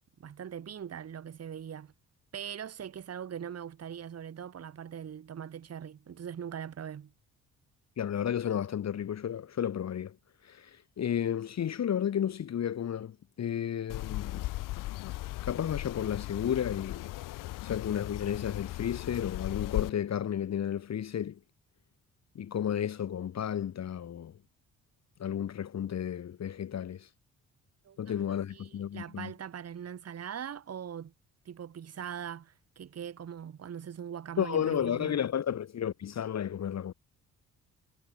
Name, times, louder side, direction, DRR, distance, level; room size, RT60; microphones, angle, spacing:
voice 1, 0.2-1.9 2.3-7.1 27.8-28.2 28.5-31.1 31.4-35.2, right 8 dB, 45° right, 1.4 m, -41 dB
voice 2, 8.0-10.2 10.4-14.5 15.4-17.1 17.6-21.4 22.3-24.3 25.2-27.1 28.0-29.3 34.4-36.9, left 9 dB, 45° left, 1.1 m, -32 dB
sound 1, 13.9-19.9, left 18 dB, 60° left, 0.5 m, -37 dB
hypercardioid pair, 55°, 36 cm